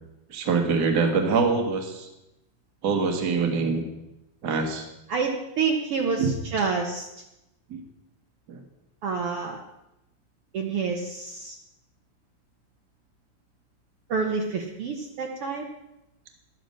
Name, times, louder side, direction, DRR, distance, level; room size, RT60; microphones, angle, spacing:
voice 1, 0.3-2.1 2.8-3.8 4.4-4.9 6.2-6.3 7.7-7.8 8.5-8.6, right 4 dB, 50° right, 4 dB, 1.2 m, -24 dB
voice 2, 5.1-6.2 6.5-7.1 9.0-9.6 10.5-11.5 14.1-15.7, right 5 dB, 80° right, 1 dB, 1.2 m, -28 dB
12.0 x 10.0 x 6.4 m, 0.90 s
omnidirectional pair, 4.2 m